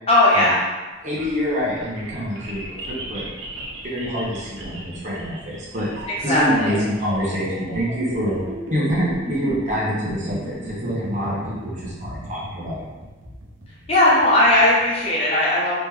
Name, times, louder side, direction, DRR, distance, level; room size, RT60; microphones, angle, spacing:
voice 1, 0.1-0.6 6.1-6.8 13.9-15.7, left 1 dB, 30° left, -7 dB, 1.2 m, -17 dB
sound 1, 0.9-15.0, right 1 dB, 90° right, 0.9 m, -36 dB
voice 2, 1.0-2.6 2.9-3.2 3.8-5.9 6.2-8.4 8.7-12.8, equal, 40° right, -7 dB, 1.3 m, -26 dB
4.0 x 3.2 x 3.5 m, 1.2 s
head